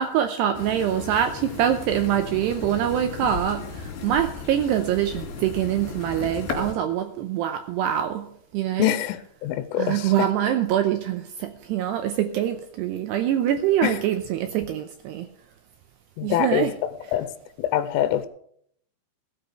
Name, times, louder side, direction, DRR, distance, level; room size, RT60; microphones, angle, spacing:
voice 1, 0.0-8.9 9.8-15.3 16.2-16.7, right 10 dB, 85° right, 7 dB, 2.4 m, -24 dB
sound 1, 0.5-6.7, left 5 dB, 60° left, 4.9 m, -35 dB
voice 2, 8.8-10.3 13.8-14.0 16.2-16.7 17.1-17.3 17.6-18.3, left 12 dB, 90° left, 12 dB, 3.2 m, -24 dB
16.0 x 7.8 x 6.6 m, 0.69 s
omnidirectional pair, 5.6 m